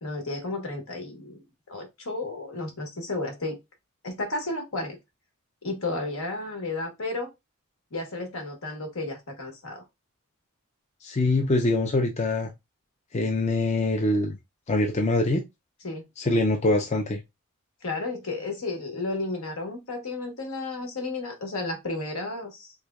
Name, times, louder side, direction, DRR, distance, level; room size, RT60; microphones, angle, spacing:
voice 1, 0.0-1.4 1.7-3.6 4.0-5.0 5.6-7.3 7.9-9.8 15.8-16.1 17.8-22.7, left 2 dB, 75° left, 1.2 m, -32 dB
voice 2, 11.0-12.5 13.1-14.4 14.7-15.4 16.2-17.2, left 2 dB, 30° left, 0.4 m, -24 dB
3.4 x 3.2 x 2.3 m
head